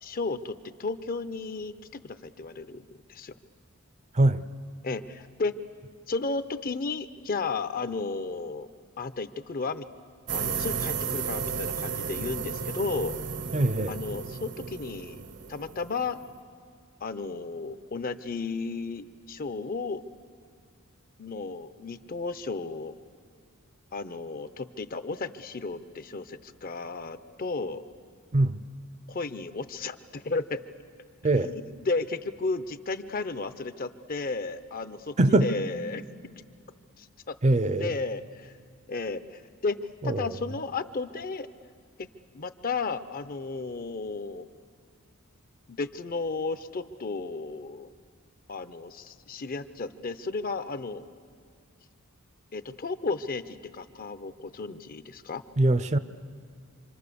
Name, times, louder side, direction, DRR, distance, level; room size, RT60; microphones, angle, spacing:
voice 1, 0.0-3.3 4.8-5.6 6.1-8.7 9.0-9.9 10.3-13.2 13.9-15.2 15.5-16.2 17.0-20.0 21.2-22.9 23.9-27.9 29.1-30.6 31.3-35.2 35.4-36.0 37.0-37.4 37.8-38.5 38.9-41.5 42.0-42.1 42.3-44.5 45.7-47.9 48.5-51.0 52.5-55.4, left 3 dB, 45° left, 0.7 m, -33 dB
sound 1, 10.3-16.4, right 6 dB, 55° right, 0.9 m, -34 dB
voice 2, 13.5-13.9 28.3-28.6 31.2-31.5 35.2-35.5 37.4-37.9 40.0-40.3 55.6-56.0, right 2 dB, 30° right, 0.6 m, -22 dB
26.5 x 25.5 x 6.9 m
head